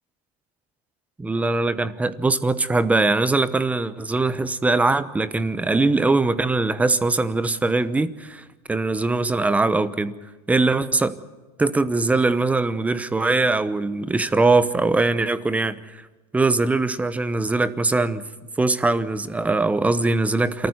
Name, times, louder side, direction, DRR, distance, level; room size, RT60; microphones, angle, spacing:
voice 1, 1.2-10.1 10.5-11.1 11.6-15.8 16.3-18.2 18.6-20.7, right 3 dB, 5° right, 15 dB, 0.9 m, -21 dB
28.0 x 14.0 x 9.5 m, 1.2 s
supercardioid pair, 150°, 19 cm